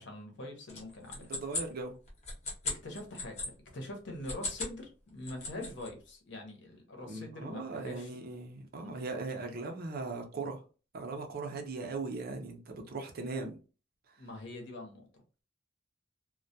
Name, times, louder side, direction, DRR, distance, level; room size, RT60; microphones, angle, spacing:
voice 1, 0.0-1.3 2.6-8.1 8.8-8.9 14.2-15.1, left 1 dB, 65° left, 0.8 m, -44 dB
sound 1, 0.7-3.5 4.1-4.8 5.1-5.9, left 3 dB, 35° left, 0.7 m, -38 dB
voice 2, 1.2-2.0 7.1-10.6 10.9-13.6 14.1-14.3, right 3 dB, 50° right, 0.5 m, -39 dB
2.2 x 2.1 x 2.6 m
head